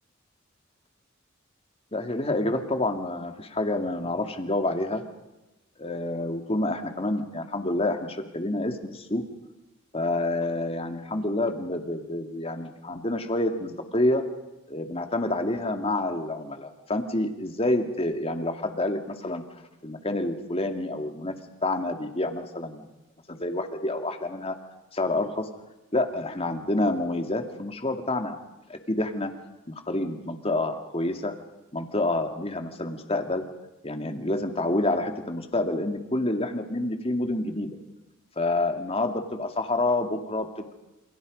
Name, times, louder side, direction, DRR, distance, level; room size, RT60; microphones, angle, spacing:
voice 1, 1.9-5.0 5.8-9.2 9.9-14.2 14.7-19.4 19.8-21.3 21.6-22.9 23.3-24.6 24.9-25.5 25.9-28.4 28.7-29.3 29.7-31.3 31.7-33.5 33.8-37.7 38.4-40.7, left 2 dB, 30° left, 6 dB, 2.3 m, -28 dB
28.5 x 27.5 x 5.4 m, 1.0 s
head